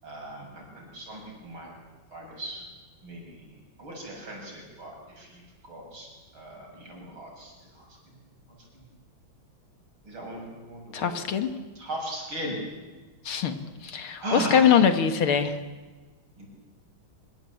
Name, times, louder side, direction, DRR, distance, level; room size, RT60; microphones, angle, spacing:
voice 1, 0.0-1.7 2.1-2.7 3.0-8.2 8.5-8.9 10.0-11.2 11.7-12.6 14.2-14.9 16.4-16.5, right 1 dB, 70° right, 0 dB, 8.0 m, -38 dB
voice 2, 10.9-11.5 13.2-15.6, left 7 dB, 80° left, 9 dB, 2.6 m, -23 dB
25.0 x 24.0 x 8.6 m, 1.3 s
omnidirectional pair, 2.3 m